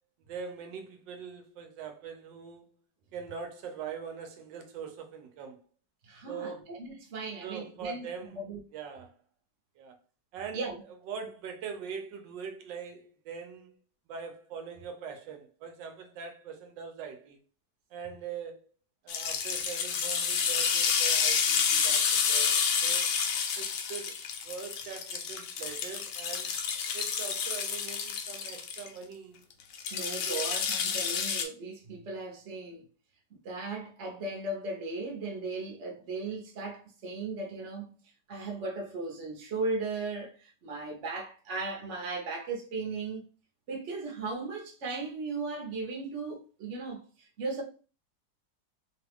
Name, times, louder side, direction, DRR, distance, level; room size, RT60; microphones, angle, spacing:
voice 1, 0.3-2.7 3.1-5.6 6.3-6.7 7.4-8.4 8.7-9.1 9.8-10.0 10.3-10.6 11.1-13.7 14.1-17.4 17.9-18.6 19.0-23.1 23.6-24.2 24.4-26.5 26.9-29.4 30.2-30.5, right 6 dB, 85° right, 1.3 m, -42 dB
voice 2, 6.0-8.6 10.5-10.8 29.9-32.8 33.4-38.0 38.3-43.2 43.7-47.6, right 3 dB, 50° right, 1.0 m, -37 dB
sound 1, 19.1-28.9 29.7-31.4, left 6 dB, 75° left, 1.2 m, -29 dB
3.2 x 2.3 x 3.4 m
omnidirectional pair, 1.9 m